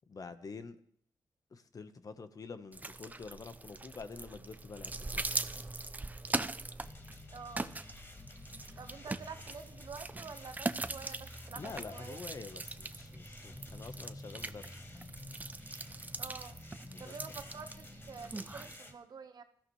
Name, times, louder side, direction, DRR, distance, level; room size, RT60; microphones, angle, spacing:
voice 1, 0.1-0.8 1.5-5.2 11.6-14.9 16.9-17.4, left 4 dB, 50° left, 10 dB, 1.2 m, -47 dB
sound 1, 2.7-18.8, right 2 dB, 20° right, 0.7 m, -41 dB
sound 2, 6.8-18.9, left 2 dB, 30° left, 2.3 m, -51 dB
voice 2, 7.3-7.7 8.8-12.2 16.2-16.6 17.0-19.4, right 5 dB, 60° right, 8 dB, 1.4 m, -48 dB
20.5 x 14.0 x 3.3 m, 0.65 s
cardioid pair, 75°, 8 cm